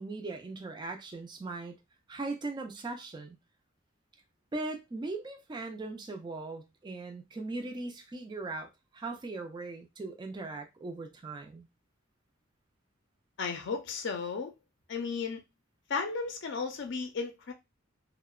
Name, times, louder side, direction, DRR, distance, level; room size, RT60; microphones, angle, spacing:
voice 1, 0.0-1.8 2.1-3.4 4.5-11.7, right 3 dB, 20° right, 0.3 m, -39 dB
voice 2, 13.4-14.5 14.9-15.4 15.9-17.5, left 5 dB, 60° left, 0.4 m, -34 dB
2.8 x 2.0 x 2.3 m
head